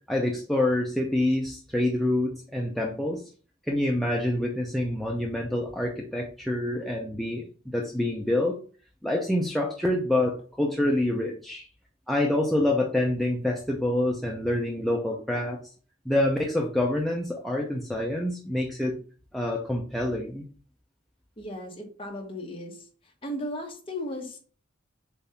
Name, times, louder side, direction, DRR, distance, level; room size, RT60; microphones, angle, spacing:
voice 1, 0.1-3.2 3.7-8.6 9.0-11.7 12.1-15.6 16.0-19.0 19.3-20.5, left 1 dB, ahead, -1 dB, 0.6 m, -27 dB
voice 2, 21.4-22.9 23.2-24.4, left 1 dB, 25° left, 1 dB, 1.3 m, -36 dB
7.0 x 2.7 x 5.7 m, 0.41 s
head